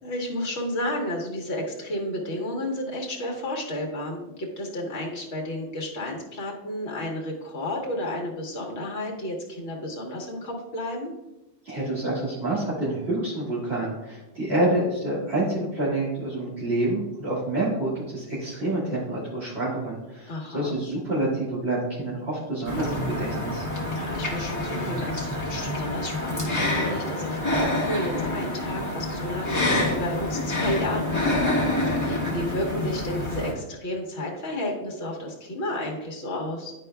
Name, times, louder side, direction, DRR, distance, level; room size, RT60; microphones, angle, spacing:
voice 1, 0.0-11.1 20.3-20.7 23.9-31.2 31.9-36.7, left 1 dB, 60° left, 0 dB, 1.6 m, -32 dB
voice 2, 11.6-23.7, right 1 dB, 55° right, -10 dB, 2.2 m, -27 dB
sound 1, 22.7-33.5, left 1 dB, 15° left, 1.6 m, -27 dB
11.0 x 4.8 x 2.2 m, 0.95 s
omnidirectional pair, 1.3 m